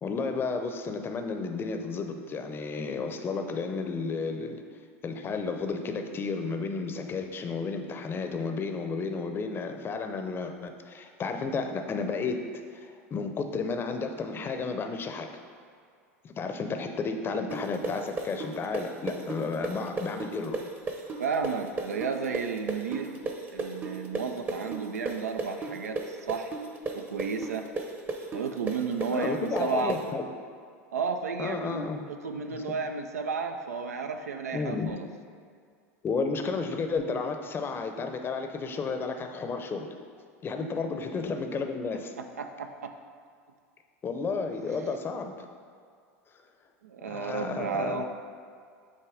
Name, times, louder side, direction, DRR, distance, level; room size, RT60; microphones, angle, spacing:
voice 1, 0.0-4.6 5.0-12.4 12.7-15.3 16.2-20.6 29.1-30.2 31.4-32.0 32.5-32.6 34.5-35.0 36.0-39.9 40.4-42.1 44.0-45.4 47.1-48.0, left 4 dB, 25° left, 5 dB, 0.6 m, -32 dB
sound 1, 17.5-25.1 25.4-30.0, right 3 dB, 25° right, 0.8 m, -33 dB
voice 2, 21.2-23.2 23.5-26.5 26.9-27.6 28.3-30.0 30.9-35.1 40.6-40.7 42.4-42.9 46.8-48.0, right 5 dB, 85° right, 6 dB, 0.5 m, -33 dB
7.8 x 2.9 x 4.8 m, 2.2 s
hypercardioid pair, 90°, 8 cm